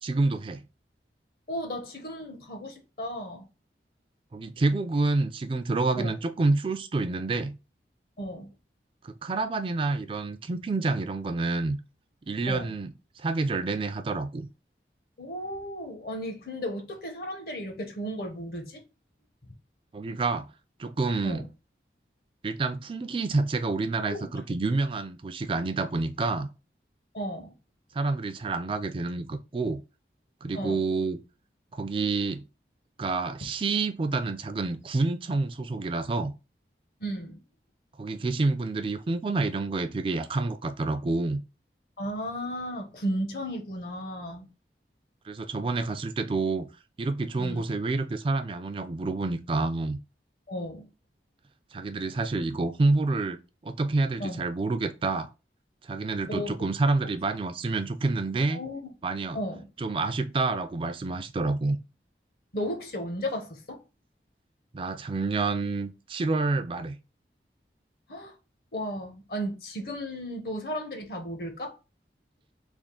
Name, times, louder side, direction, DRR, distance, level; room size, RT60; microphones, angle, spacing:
voice 1, 0.0-0.6 4.3-7.6 9.0-11.8 12.3-14.5 19.9-20.5 20.8-21.5 22.4-26.5 27.9-29.8 30.4-31.2 31.7-32.4 33.0-36.3 38.0-41.4 45.3-46.7 47.0-50.0 51.7-53.4 53.6-55.3 55.8-58.6 59.0-59.4 59.8-61.8 64.7-67.0, right 3 dB, 30° right, 0.3 m, -28 dB
voice 2, 1.5-3.5 5.9-6.1 8.2-8.5 12.5-12.7 15.2-18.8 21.2-21.4 24.1-24.3 27.1-27.5 30.5-30.8 37.0-37.4 42.0-44.5 47.4-47.7 50.5-50.9 54.2-54.4 56.3-56.5 58.5-58.8 59.3-59.7 62.5-63.8 68.1-68.3 68.7-71.7, equal, 55° left, 0.8 m, -34 dB
3.5 x 2.4 x 3.7 m
head